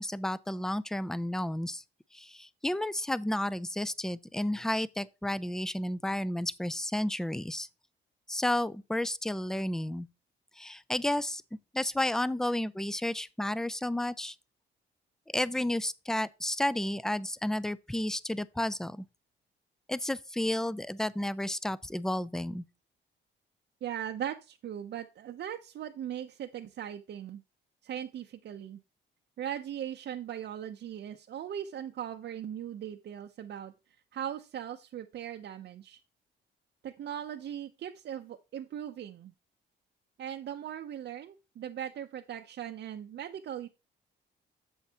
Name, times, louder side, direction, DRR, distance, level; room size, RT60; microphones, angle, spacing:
voice 1, 0.0-1.8 2.1-7.7 8.3-10.1 10.6-11.4 11.7-14.4 15.3-19.1 19.9-22.6, left 1 dB, 5° left, 0.4 m, -32 dB
voice 2, 23.8-27.4 27.8-28.8 29.4-33.7 34.1-36.0 36.8-39.3 40.2-43.7, right 10 dB, 60° right, 0.7 m, -39 dB
7.9 x 7.2 x 2.9 m
cardioid pair, 90°, 20 cm